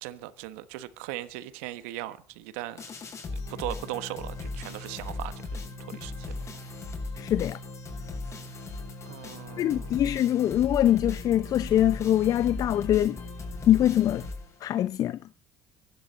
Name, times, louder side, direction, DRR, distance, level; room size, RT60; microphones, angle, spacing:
voice 1, 0.0-2.8 3.3-5.6 5.9-6.3 9.1-10.0, right 15 dB, 80° right, 1.3 m, -38 dB
sound 1, 2.8-14.9, left 2 dB, 40° left, 7.1 m, -37 dB
voice 2, 7.2-7.6 9.6-13.2 13.7-14.2 14.6-15.2, left 12 dB, 55° left, 0.7 m, -23 dB
24.0 x 11.5 x 4.2 m
hypercardioid pair, 70°, 7 cm